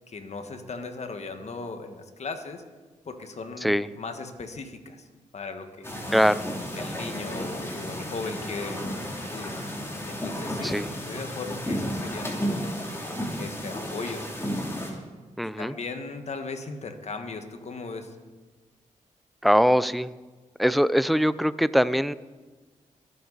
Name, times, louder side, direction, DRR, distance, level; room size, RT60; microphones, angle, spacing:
voice 1, 0.1-2.6 3.0-5.0 5.3-6.1 6.7-9.5 10.0-10.8 11.1-12.9 13.4-14.3 15.6-18.1, left 4 dB, 55° left, 6 dB, 1.6 m, -37 dB
sound 1, 5.8-14.9, equal, 20° left, 2.9 m, -33 dB
voice 2, 6.1-6.4 10.6-10.9 15.4-15.8 19.4-20.1 20.6-22.1, equal, ahead, 16 dB, 0.5 m, -22 dB
21.5 x 7.9 x 4.1 m, 1.3 s
cardioid pair, 60°, 14 cm